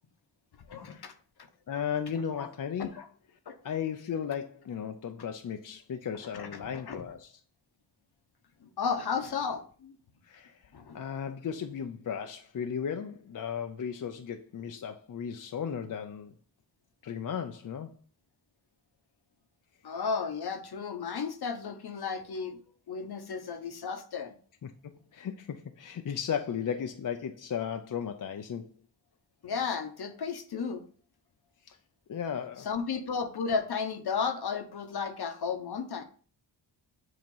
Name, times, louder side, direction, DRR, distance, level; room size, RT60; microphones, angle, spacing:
voice 1, 0.7-1.1 2.4-2.5 2.8-3.1 3.5-3.6 6.3-7.0 8.8-9.9 10.7-11.0 19.8-22.6 22.9-24.3 29.4-30.8 32.6-36.0, left 5 dB, 65° left, 1.0 m, -33 dB
voice 2, 1.7-2.9 3.6-7.3 10.2-10.6 10.9-16.3 17.0-17.9 24.6-28.7 31.7-31.8 32.1-32.7, left 8 dB, 50° left, 0.6 m, -35 dB
7.8 x 2.9 x 5.4 m
cardioid pair, 80°, 42 cm